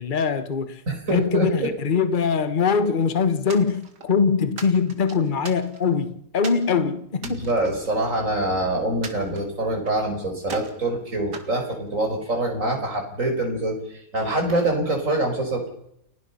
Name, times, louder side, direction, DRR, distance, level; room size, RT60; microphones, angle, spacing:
voice 1, 0.0-0.8 1.1-7.5, left 5 dB, 30° left, 1.4 m, -22 dB
voice 2, 0.9-1.7 7.2-15.7, right 1 dB, 50° right, 5.6 m, -25 dB
sound 1, 3.5-4.1 4.6-6.0 6.4-6.7 7.1-8.5 9.0-10.0 10.4-10.8 11.3-12.4, right 5 dB, 80° right, 2.7 m, -40 dB
30.0 x 18.0 x 5.6 m
omnidirectional pair, 1.8 m